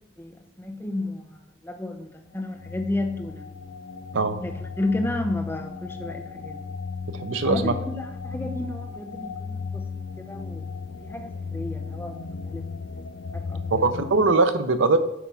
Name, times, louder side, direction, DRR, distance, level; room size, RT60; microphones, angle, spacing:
voice 1, 0.2-3.4 4.4-6.8 7.5-10.0 10.3-10.7 11.0-12.6 13.3-13.9, left 2 dB, 10° left, 4 dB, 0.7 m, -32 dB
sound 1, 2.3-14.3, left 5 dB, 85° left, 0.6 m, -35 dB
voice 2, 7.1-7.7 13.8-15.0, right 3 dB, 80° right, 10 dB, 0.6 m, -21 dB
8.3 x 3.5 x 5.4 m, 0.94 s
head